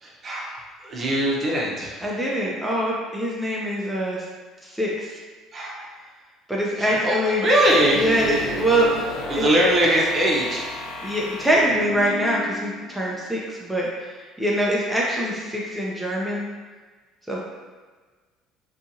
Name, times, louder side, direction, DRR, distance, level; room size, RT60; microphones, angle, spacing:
voice 1, 0.0-2.0 5.5-5.9 6.8-8.5 9.3-10.7, right 1 dB, 40° right, -3 dB, 0.7 m, -22 dB
voice 2, 2.0-4.2 4.6-5.1 6.5-7.4 8.0-9.4 11.0-14.1 14.4-16.4 17.3-17.4, right 1 dB, 5° right, -5 dB, 0.5 m, -24 dB
sound 1, 7.5-13.2, left 1 dB, 85° left, 0.5 m, -33 dB
2.6 x 2.4 x 2.7 m, 1.4 s
supercardioid pair, 75°, 0 cm